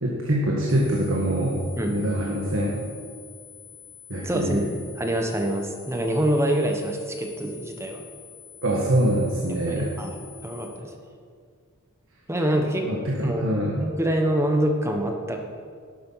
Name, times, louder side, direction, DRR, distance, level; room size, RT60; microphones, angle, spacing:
voice 1, 0.0-1.6 1.9-2.8 4.1-4.7 8.6-9.9 12.8-13.8, right 1 dB, 60° right, -3 dB, 1.5 m, -24 dB
sound 1, 0.7-10.7, left 9 dB, 15° left, 1.9 m, -47 dB
voice 2, 4.2-8.0 9.7-10.9 12.3-12.9 13.2-13.4 13.8-15.4, right 1 dB, 10° right, 3 dB, 1.0 m, -25 dB
12.0 x 8.5 x 5.7 m, 2.1 s
head